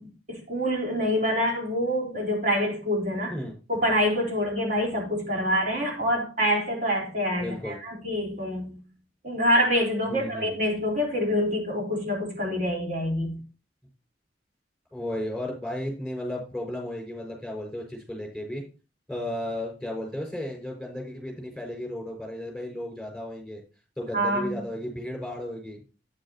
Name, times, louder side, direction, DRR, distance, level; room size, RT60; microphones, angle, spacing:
voice 1, 0.0-3.4 3.7-8.8 9.2-13.4 24.1-24.6, equal, 45° right, 4.1 m, -26 dB
voice 2, 7.4-7.8 10.1-10.5 14.9-18.6 19.1-23.6 24.0-25.8, left 1 dB, ahead, 5.4 m, -34 dB
9.9 x 9.6 x 2.9 m
head